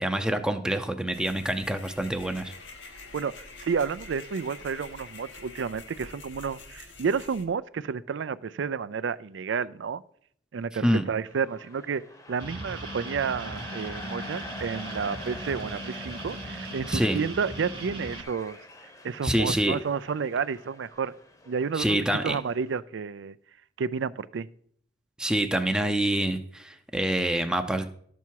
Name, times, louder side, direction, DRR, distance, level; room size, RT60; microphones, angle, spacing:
voice 1, 0.0-2.5 10.8-11.0 16.9-17.2 19.2-19.8 21.7-22.4 25.2-27.9, right 1 dB, 5° right, 6 dB, 0.5 m, -26 dB
sound 1, 1.1-7.5, left 3 dB, 80° left, 1.1 m, -46 dB
voice 2, 3.1-10.0 10.5-12.0 12.3-21.1 21.5-23.4 23.8-24.5, right 6 dB, 75° right, 16 dB, 0.4 m, -31 dB
sound 2, 11.3-22.8, left 2 dB, 20° left, 0.9 m, -45 dB
sound 3, 12.4-18.2, right 2 dB, 25° right, 1.0 m, -38 dB
12.0 x 7.0 x 4.6 m, 0.63 s
head